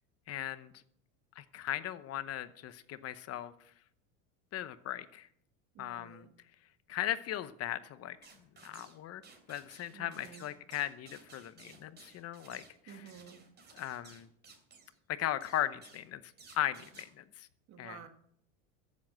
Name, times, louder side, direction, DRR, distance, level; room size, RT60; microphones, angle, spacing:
voice 1, 0.3-0.7 1.4-3.5 4.5-5.3 5.8-6.2 6.9-8.2 8.6-9.2 9.5-12.6 13.8-14.3 15.1-16.2 16.5-17.5 17.8-18.0, left 12 dB, 40° left, 14 dB, 0.9 m, -37 dB
voice 2, 5.7-6.3 9.9-10.5 12.9-13.4 17.7-18.1, right 8 dB, 45° right, 8 dB, 1.8 m, -51 dB
sound 1, 8.2-9.0 9.2-15.0 15.4-16.1 16.4-17.1, right 4 dB, 25° right, 3.4 m, -57 dB
14.0 x 7.5 x 7.7 m, 0.69 s
supercardioid pair, 120°, 39 cm